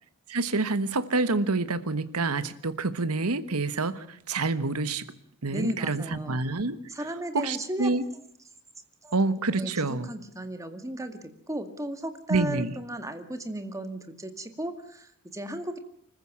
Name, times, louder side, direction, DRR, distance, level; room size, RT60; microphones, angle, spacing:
voice 1, 0.3-5.1 5.4-6.8 7.3-8.0 9.1-10.1 12.3-12.7, right 3 dB, 85° right, 13 dB, 1.3 m, -27 dB
voice 2, 5.5-6.4 6.9-7.9 9.0-9.2 9.5-9.7 10.1-11.2 11.5-15.8, right 1 dB, 15° right, 8 dB, 2.0 m, -35 dB
25.5 x 14.5 x 8.8 m, 0.68 s
head